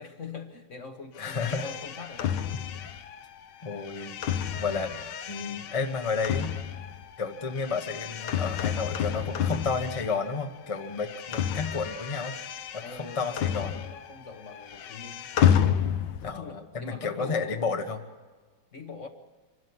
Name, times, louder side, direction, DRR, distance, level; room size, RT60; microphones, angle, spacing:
voice 1, 0.0-2.4 2.7-2.8 12.8-15.3 16.2-17.7 18.7-19.1, left 4 dB, 45° left, 6 dB, 1.3 m, -42 dB
sound 1, 1.2-10.5 10.7-14.2 14.4-16.3, left 9 dB, 65° left, 1.3 m, -30 dB
voice 2, 1.2-1.7 3.6-4.2 4.6-6.6 7.2-12.3 12.7-13.8 16.2-18.0, left 4 dB, 25° left, 5 dB, 0.9 m, -32 dB
25.5 x 13.0 x 9.5 m, 1.4 s
omnidirectional pair, 2.2 m